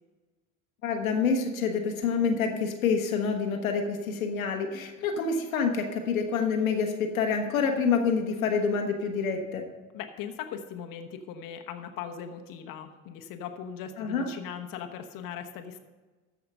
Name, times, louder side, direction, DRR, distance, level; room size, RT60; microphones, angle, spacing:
voice 1, 0.8-9.6 14.0-14.3, left 5 dB, 80° left, 4 dB, 1.2 m, -27 dB
voice 2, 9.9-15.8, left 8 dB, 55° left, 5 dB, 1.1 m, -39 dB
13.5 x 5.0 x 6.6 m, 1.3 s
hypercardioid pair, 65°, 41 cm